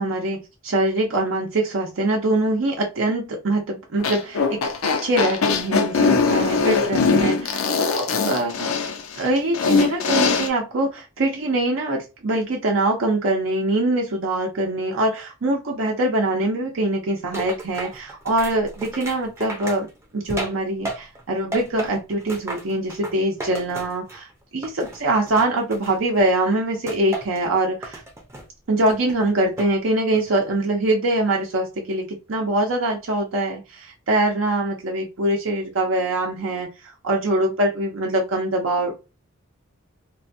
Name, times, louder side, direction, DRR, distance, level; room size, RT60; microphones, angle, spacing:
voice 1, 0.0-4.7 5.0-8.8 9.2-19.9 20.1-28.0 28.7-39.0, right 1 dB, 65° right, 0 dB, 0.6 m, -23 dB
sound 1, 4.0-10.5, left 4 dB, 75° left, 0.6 m, -21 dB
sound 2, 17.3-21.2 21.5-24.3 24.6-26.3 26.9-27.4 27.8-28.5 28.9-29.8 30.1-30.5, right 1 dB, 10° right, 0.6 m, -34 dB
3.0 x 2.2 x 2.6 m, 0.27 s
head